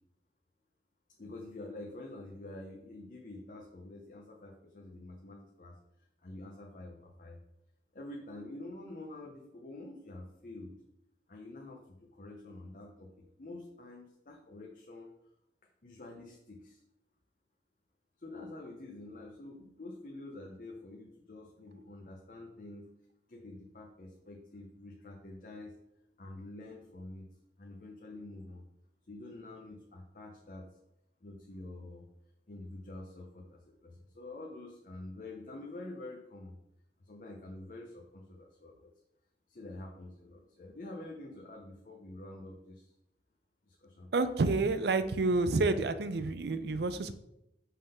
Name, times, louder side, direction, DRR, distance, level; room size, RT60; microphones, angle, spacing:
voice 1, 1.2-5.8 6.2-7.4 7.9-10.7 11.3-15.1 15.8-16.8 18.2-22.9 23.3-25.8 26.2-27.3 27.6-28.6 29.1-30.7 31.2-32.0 32.5-36.6 37.0-38.9 39.5-42.9 43.7-44.1, left 2 dB, 50° left, 0 dB, 0.7 m, -47 dB
voice 2, 44.1-47.1, right 3 dB, 65° right, 12 dB, 0.4 m, -29 dB
5.5 x 3.7 x 5.4 m, 0.83 s
head